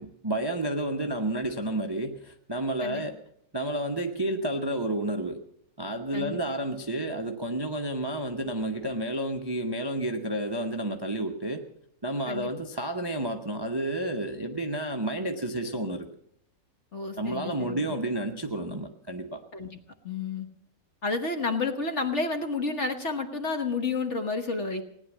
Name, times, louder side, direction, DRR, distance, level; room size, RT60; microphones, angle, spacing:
voice 1, 0.0-3.1 3.5-5.4 5.8-11.6 12.0-16.1 17.2-19.4, right 1 dB, 20° right, 4 dB, 0.7 m, -30 dB
voice 2, 16.9-17.8 19.5-19.7 20.0-20.5 21.0-24.8, left 3 dB, 45° left, 6 dB, 1.4 m, -30 dB
18.0 x 10.0 x 7.3 m, 0.69 s
omnidirectional pair, 2.0 m